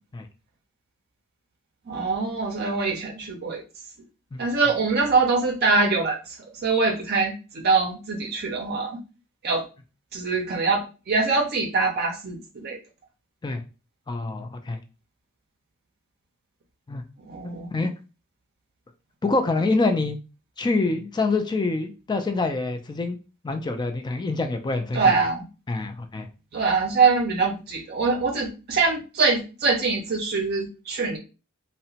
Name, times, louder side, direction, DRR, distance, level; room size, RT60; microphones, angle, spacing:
voice 1, 1.9-3.6 4.4-6.2 6.6-9.0 9.4-9.6 10.1-12.8 17.3-17.7 24.9-25.5 26.5-31.2, right 4 dB, 50° right, 1 dB, 0.5 m, -23 dB
voice 2, 14.1-14.8 16.9-17.0 17.7-17.9 19.2-20.2 20.6-23.2 23.4-25.2 25.7-26.3, left 3 dB, 20° left, 6 dB, 0.3 m, -26 dB
2.8 x 2.1 x 2.7 m, 0.32 s
head